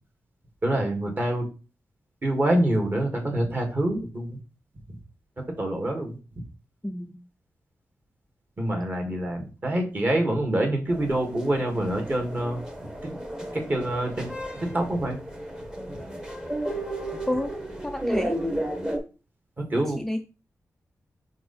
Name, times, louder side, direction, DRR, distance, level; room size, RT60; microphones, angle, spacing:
voice 1, 0.6-1.5 2.2-4.4 5.6-6.2 8.6-12.6 13.0-13.2 13.5-14.3 14.6-15.2 19.6-20.0, right 1 dB, 30° right, 2 dB, 1.8 m, -26 dB
voice 2, 6.8-7.2 17.3-17.5 17.8-18.4 20.0-20.2, left 1 dB, 5° left, 6 dB, 0.4 m, -29 dB
sound 1, 10.9-19.0, right 1 dB, 10° right, 1.1 m, -33 dB
5.5 x 4.7 x 4.1 m, 0.32 s
wide cardioid pair, 145°, 6 cm